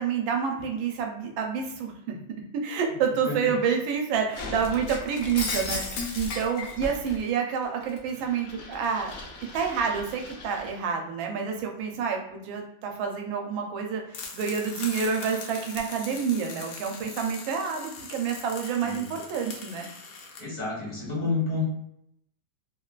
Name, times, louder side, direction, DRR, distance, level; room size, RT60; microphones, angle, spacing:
voice 1, 0.0-9.1 9.5-19.9, right 6 dB, 85° right, 2 dB, 1.4 m, -28 dB
Shatter, 4.3-7.2 7.6-10.8, left 3 dB, 85° left, 0.7 m, -36 dB
sound 1, 14.1-20.4, left 5 dB, 70° left, 1.1 m, -41 dB
voice 2, 18.8-19.1 20.4-21.6, left 3 dB, 35° left, -5 dB, 0.7 m, -30 dB
3.6 x 2.2 x 2.3 m, 0.76 s
omnidirectional pair, 2.1 m